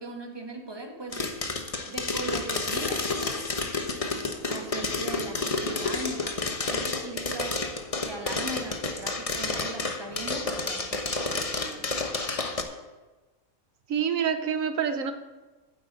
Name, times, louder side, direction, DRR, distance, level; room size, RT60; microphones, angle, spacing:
voice 1, 0.0-1.4 1.9-3.1 3.9-6.4 6.7-7.7 8.0-11.9, right 2 dB, 20° right, 4 dB, 1.3 m, -39 dB
sound 1, 1.1-12.6, left 3 dB, 30° left, 1.0 m, -30 dB
voice 2, 13.9-15.1, right 7 dB, 70° right, 8 dB, 1.3 m, -27 dB
9.9 x 8.0 x 8.1 m, 1.2 s
omnidirectional pair, 1.4 m